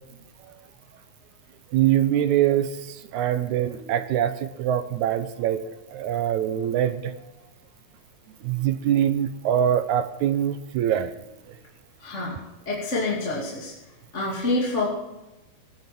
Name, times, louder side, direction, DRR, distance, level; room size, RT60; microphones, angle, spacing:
voice 1, 1.7-5.6 5.9-7.1 8.4-11.2, right 10 dB, 75° right, 11 dB, 2.0 m, -23 dB
voice 2, 12.0-12.4 12.7-13.7 14.1-14.9, left 2 dB, 25° left, -5 dB, 2.6 m, -27 dB
18.0 x 11.0 x 6.0 m, 0.99 s
omnidirectional pair, 3.7 m